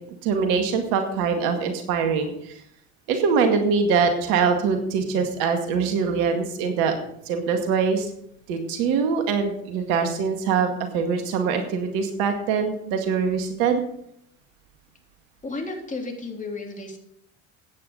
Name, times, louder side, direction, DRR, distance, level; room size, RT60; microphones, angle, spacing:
voice 1, 0.1-2.6 3.1-7.0 7.3-8.1 8.5-13.8, right 5 dB, 60° right, 6 dB, 2.1 m, -23 dB
voice 2, 15.4-17.0, left 3 dB, 20° left, 1 dB, 3.6 m, -33 dB
15.0 x 9.4 x 4.0 m, 0.72 s
figure-of-eight pair, 65°, 39 cm